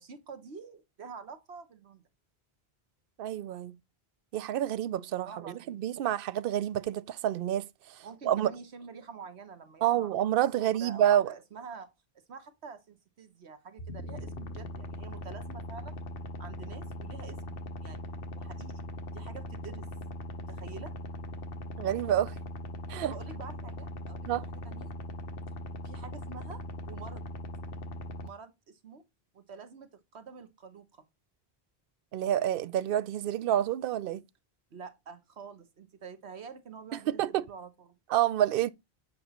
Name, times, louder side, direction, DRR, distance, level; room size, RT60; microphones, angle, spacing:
voice 1, 0.0-2.0 5.1-5.8 8.0-10.2 10.6-11.9 12.3-16.0 16.4-18.0 18.3-18.8 19.1-19.9 20.5-20.9 23.0-24.9 25.8-27.3 28.2-29.0 29.3-31.0 34.7-38.0, right 5 dB, 85° right, 1.5 m, -47 dB
voice 2, 3.2-3.8 4.3-5.3 5.7-7.7 8.2-8.5 9.8-11.3 21.8-22.3 22.9-23.1 24.3-24.4 32.1-34.2 37.1-37.4 38.1-38.7, right 11 dB, 65° right, 0.7 m, -28 dB
sound 1, 13.8-28.3, left 1 dB, 60° left, 1.1 m, -40 dB
7.8 x 5.3 x 2.9 m
omnidirectional pair, 1.1 m